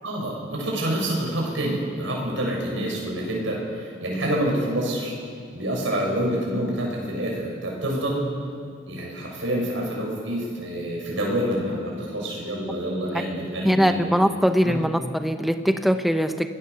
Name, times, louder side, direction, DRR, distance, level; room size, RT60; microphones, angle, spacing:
voice 1, 0.0-5.1 5.5-8.3 8.9-14.1 14.6-14.8, right 1 dB, 70° right, -2 dB, 6.9 m, -27 dB
voice 2, 13.6-16.5, equal, ahead, 7 dB, 0.8 m, -21 dB
26.0 x 20.5 x 7.0 m, 2.3 s
head